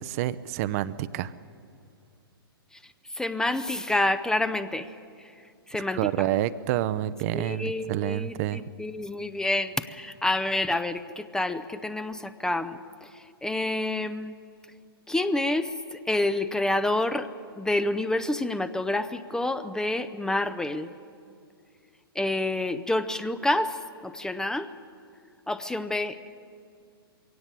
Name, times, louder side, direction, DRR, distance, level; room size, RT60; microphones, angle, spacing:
voice 1, 0.0-1.3 5.9-8.6, right 13 dB, 40° right, 15 dB, 0.6 m, -28 dB
voice 2, 3.1-4.9 5.7-6.3 7.3-14.3 15.1-17.3 17.6-20.9 22.2-24.7 25.5-26.3, left 2 dB, 5° left, 11 dB, 0.5 m, -28 dB
22.5 x 17.5 x 8.2 m, 2.4 s
figure-of-eight pair, 115°, 13 cm